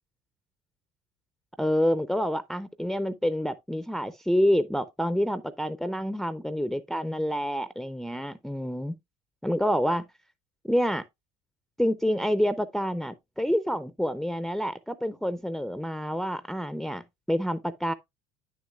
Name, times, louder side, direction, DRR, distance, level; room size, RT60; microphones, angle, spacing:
voice 1, 1.6-8.9 9.4-10.1 10.6-11.0 11.8-17.9, equal, ahead, 0.4 m, -28 dB
9.4 x 6.4 x 2.3 m
hypercardioid pair, 70°, 15 cm